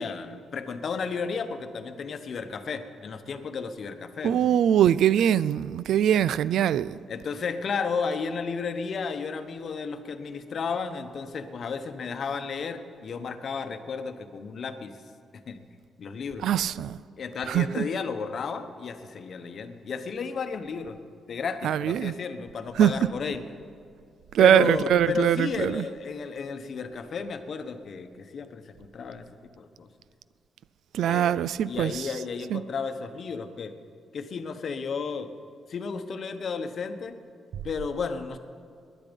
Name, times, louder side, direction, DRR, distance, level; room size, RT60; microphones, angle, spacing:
voice 1, 0.0-4.5 7.1-15.0 15.5-15.6 16.0-16.4 17.2-21.0 21.3-23.4 24.4-29.3 29.6-29.9 31.0-33.7 34.1-35.3 35.7-37.2 37.6-38.4, left 5 dB, 50° left, 1.0 m, -33 dB
voice 2, 4.2-7.0 16.4-17.0 17.5-17.9 21.6-22.1 22.8-22.9 24.3-25.8 30.9-32.1 32.5-32.6, right 10 dB, 80° right, 0.3 m, -22 dB
20.0 x 10.5 x 5.3 m
cardioid pair, 115°, 0 cm